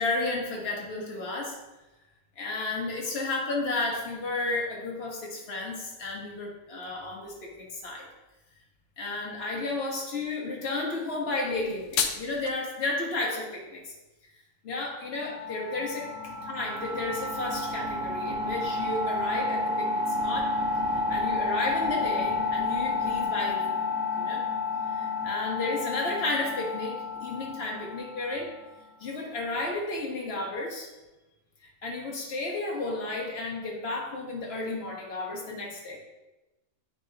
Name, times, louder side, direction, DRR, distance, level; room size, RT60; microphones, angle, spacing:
voice 1, 0.0-1.6 2.4-8.1 9.0-13.9 14.6-16.1 16.4-20.5 20.9-23.8 24.2-24.4 24.9-28.5 29.0-30.9 31.6-36.0, left 2 dB, 45° left, -1 dB, 1.5 m, -32 dB
sound 1, 11.5-12.5, left 7 dB, 65° left, 0.8 m, -31 dB
sound 2, 15.1-28.6, left 3 dB, 55° right, 1.6 m, -30 dB
9.5 x 3.9 x 2.9 m, 1.0 s
omnidirectional pair, 1.5 m